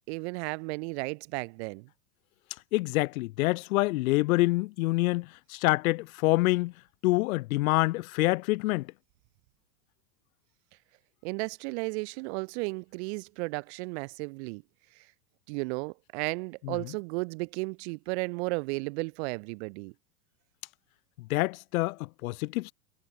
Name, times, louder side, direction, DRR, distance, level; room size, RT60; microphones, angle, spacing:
voice 1, 0.1-1.9 11.2-14.6 15.5-19.9, right 29 dB, 45° right, 0.6 m, -34 dB
voice 2, 2.7-6.7 7.0-8.9 16.6-16.8 21.3-22.7, left 20 dB, 60° left, 1.4 m, -26 dB
hypercardioid pair, 115°, 46 cm